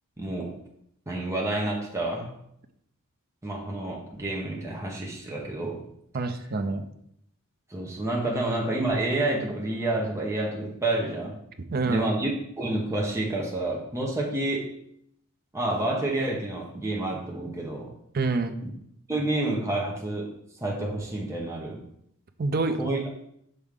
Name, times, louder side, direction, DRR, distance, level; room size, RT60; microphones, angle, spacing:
voice 1, 0.2-0.6 1.1-2.3 3.4-5.8 7.7-11.4 11.8-12.3 12.6-14.7 15.5-17.9 18.6-18.7 19.1-20.3 20.6-21.8 22.8-23.0, right 2 dB, 15° right, -2 dB, 1.0 m, -29 dB
voice 2, 6.1-6.8 11.7-12.1 18.1-18.5 22.4-22.8, right 3 dB, 45° right, 8 dB, 0.5 m, -26 dB
6.5 x 4.5 x 3.6 m, 0.72 s
head